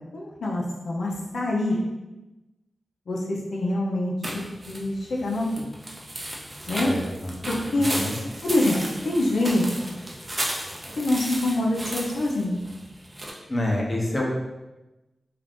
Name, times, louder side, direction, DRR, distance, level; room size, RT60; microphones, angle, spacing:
voice 1, 0.1-1.8 3.1-4.1 4.7-5.7 6.7-6.9 7.5-8.0 8.4-8.8 9.0-9.6 11.0-12.6, left 1 dB, 85° left, -2 dB, 0.5 m, -25 dB
sound 1, 4.2-13.3, right 1 dB, 25° right, 0.5 m, -34 dB
voice 2, 6.8-7.3 7.8-8.2 13.5-14.5, left 1 dB, 25° left, -3 dB, 0.6 m, -27 dB
2.5 x 2.4 x 3.4 m, 1.0 s
wide cardioid pair, 110°, 0 cm